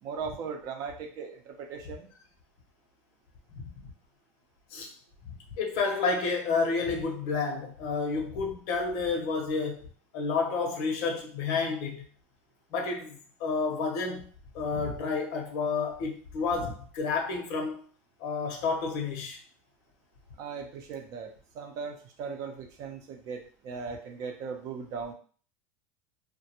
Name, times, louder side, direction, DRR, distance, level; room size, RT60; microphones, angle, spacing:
voice 1, 0.0-2.1 20.4-25.1, right 5 dB, 55° right, 0.6 m, -38 dB
voice 2, 5.6-9.8 10.1-12.0 12.7-14.3 14.5-17.8 18.2-19.4, left 4 dB, 65° left, 0.7 m, -30 dB
2.3 x 2.2 x 2.8 m
supercardioid pair, 105°, 7 cm